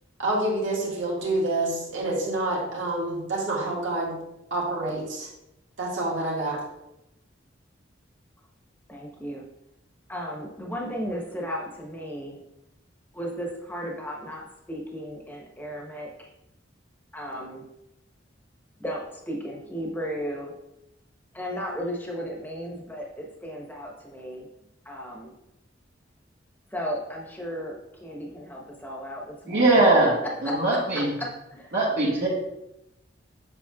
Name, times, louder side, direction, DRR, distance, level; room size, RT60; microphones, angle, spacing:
voice 1, 0.2-4.2 4.5-5.3 5.8-6.6, right 2 dB, 90° right, -4 dB, 2.0 m, -27 dB
voice 2, 8.9-9.4 10.1-12.4 13.1-16.3 17.1-17.6 18.8-20.5 21.3-24.5 24.8-25.3 26.7-29.8 30.2-31.7, equal, 10° left, 0 dB, 1.0 m, -35 dB
voice 3, 29.5-30.1 30.4-31.1 31.7-32.3, right 2 dB, 65° right, -8 dB, 1.6 m, -20 dB
7.5 x 6.3 x 2.4 m, 0.87 s
head